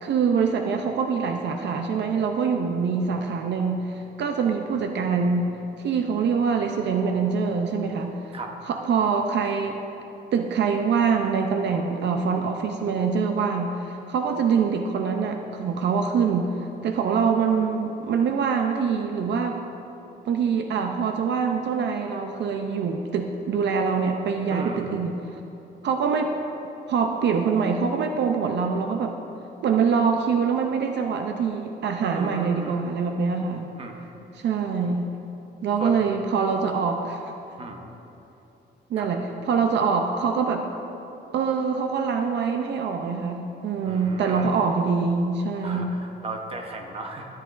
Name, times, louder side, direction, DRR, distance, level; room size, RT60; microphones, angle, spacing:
voice 1, 0.0-5.5 5.8-8.3 8.7-9.8 10.3-19.6 20.3-25.4 25.8-26.4 26.9-29.2 29.6-33.7 34.3-35.1 35.6-37.3 38.9-40.7 41.3-45.9, right 5 dB, 70° right, 4 dB, 0.5 m, -24 dB
voice 2, 24.5-25.0 32.1-32.7 33.8-34.0 35.8-36.0 37.6-37.9 39.0-39.1 43.8-44.5 45.6-47.3, right 3 dB, 30° right, 2 dB, 0.9 m, -36 dB
13.0 x 9.8 x 2.5 m, 3.0 s
wide cardioid pair, 160°, 19 cm